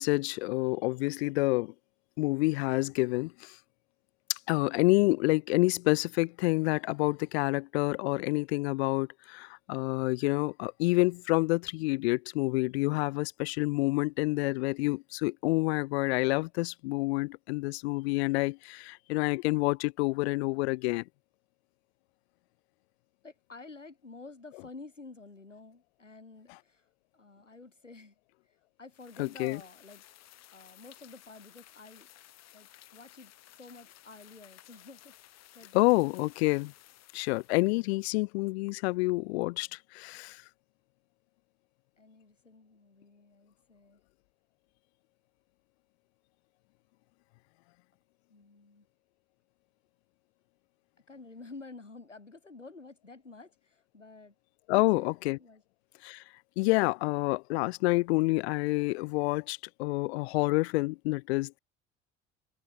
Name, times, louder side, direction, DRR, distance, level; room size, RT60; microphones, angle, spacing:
voice 1, 0.0-1.7 2.2-3.6 4.3-21.0 29.2-29.6 35.7-36.7 37.1-40.4 54.7-55.4 56.0-56.2 56.6-61.6, left 23 dB, 60° left, 0.4 m, -28 dB
voice 2, 23.2-28.2 28.5-30.0 30.5-35.1 35.5-36.2 42.0-44.0 48.3-48.9 51.1-54.3 54.7-55.6, left 3 dB, 85° left, 3.2 m, -51 dB
Rain sound, 28.9-37.9, left 14 dB, 45° left, 2.4 m, -57 dB
figure-of-eight pair, 60°, 36 cm